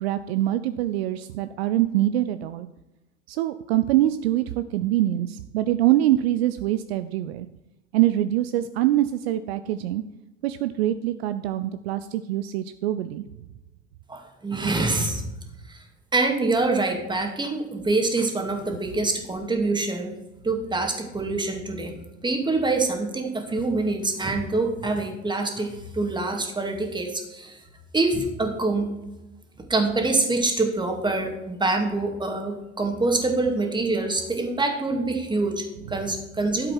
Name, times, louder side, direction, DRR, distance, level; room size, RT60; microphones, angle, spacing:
voice 1, 0.0-2.7 3.3-7.5 7.9-10.0 10.4-13.2, right 13 dB, 60° right, 12 dB, 0.6 m, -24 dB
voice 2, 14.1-15.2 15.7-15.8 16.1-20.1 20.4-22.0 22.2-27.6 27.9-28.9 29.7-36.7, right 3 dB, 15° right, 3 dB, 2.2 m, -25 dB
12.5 x 7.6 x 4.5 m, 0.99 s
figure-of-eight pair, 70°, 35 cm